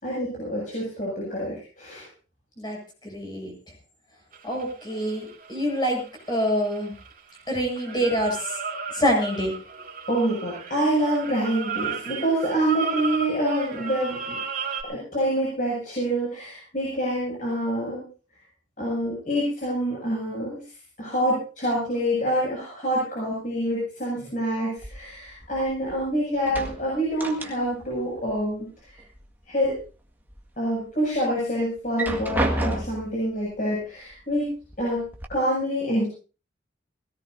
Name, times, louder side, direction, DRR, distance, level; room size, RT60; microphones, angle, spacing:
voice 1, 0.0-2.1 10.1-14.4 14.8-18.0 18.8-20.6 21.0-29.0 29.5-29.8 30.6-34.5 34.8-36.1, equal, 40° left, -5 dB, 7.7 m, -26 dB
voice 2, 3.0-3.5 4.4-6.0 6.3-6.9 7.5-8.4 8.9-9.5, equal, 25° left, 1 dB, 7.5 m, -25 dB
sound 1, 4.3-7.4 7.8-14.8, right 5 dB, 45° right, 3.4 m, -34 dB
sound 2, 24.8-26.0 26.3-28.0 28.2-29.2 29.6-30.4 30.9-31.0 31.8-33.2 34.1-34.2 34.6-35.3, right 1 dB, 10° right, 1.8 m, -31 dB
20.5 x 17.5 x 2.8 m, 0.37 s
head